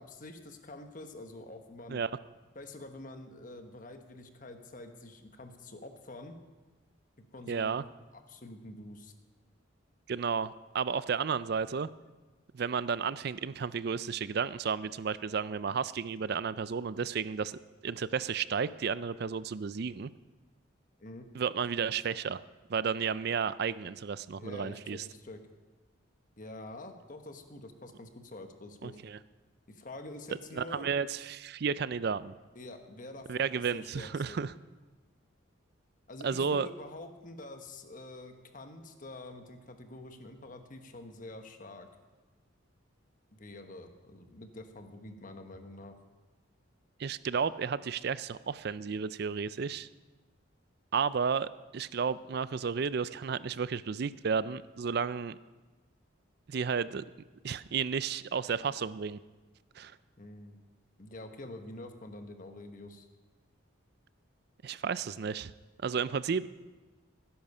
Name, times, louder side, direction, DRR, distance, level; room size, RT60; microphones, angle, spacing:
voice 1, 0.0-2.0 2.5-6.4 7.3-7.8 8.3-9.1 21.0-21.3 24.3-25.4 26.4-29.0 29.7-30.9 32.5-34.4 36.1-41.9 43.3-45.9 60.2-60.6 61.0-63.1, left 2 dB, 40° left, 6 dB, 1.2 m, -46 dB
voice 2, 7.5-7.8 10.1-11.9 12.5-20.1 21.3-22.4 22.7-25.0 28.8-29.2 30.5-32.3 33.3-34.5 36.2-36.7 47.0-49.9 50.9-55.4 56.5-57.0 57.4-59.2 59.8-60.0 64.6-65.5 65.8-66.5, right 6 dB, 50° right, 16 dB, 0.4 m, -32 dB
17.5 x 10.5 x 5.5 m, 1.3 s
head